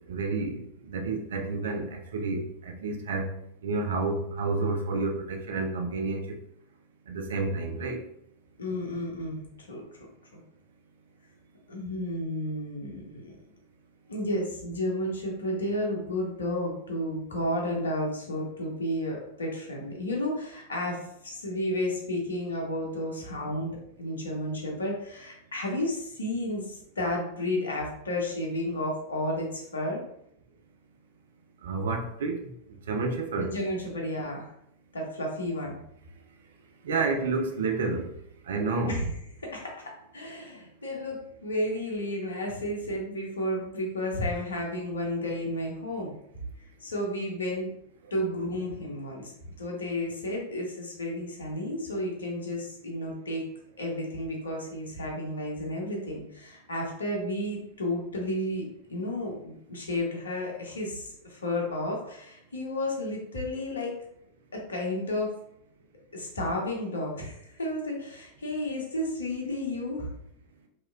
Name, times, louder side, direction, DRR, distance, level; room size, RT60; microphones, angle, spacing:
voice 1, 0.1-3.3 3.6-6.4 7.1-8.0 31.6-32.5 32.9-33.5 36.8-38.1 38.5-39.0, right 3 dB, 60° right, 3 dB, 0.5 m, -30 dB
voice 2, 8.6-9.8 11.7-13.4 14.1-30.0 33.4-34.5 34.9-35.8 38.9-39.1 39.4-46.1 46.8-47.7 48.1-49.3 49.6-53.4 53.8-63.9 64.5-65.3 66.1-70.1, left 1 dB, 70° left, -1 dB, 0.8 m, -32 dB
2.9 x 2.9 x 2.3 m, 0.73 s
figure-of-eight pair, 90°, 0 cm